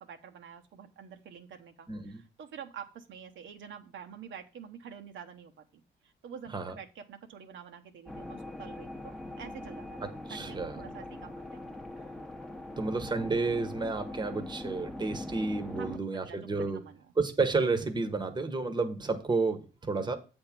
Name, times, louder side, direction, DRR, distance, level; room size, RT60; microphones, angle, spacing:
voice 1, 0.0-11.7 11.9-12.1 15.8-15.9 16.2-17.1 20.0-20.1, right 7 dB, 75° right, 0.9 m, -48 dB
voice 2, 1.9-2.2 6.5-6.8 10.3-10.8 12.8-16.8 17.2-20.2, right 3 dB, 20° right, 1.0 m, -31 dB
sound 1, 8.1-16.0, left 1 dB, ahead, 0.8 m, -42 dB
7.8 x 3.6 x 5.9 m
cardioid pair, 90°, 20 cm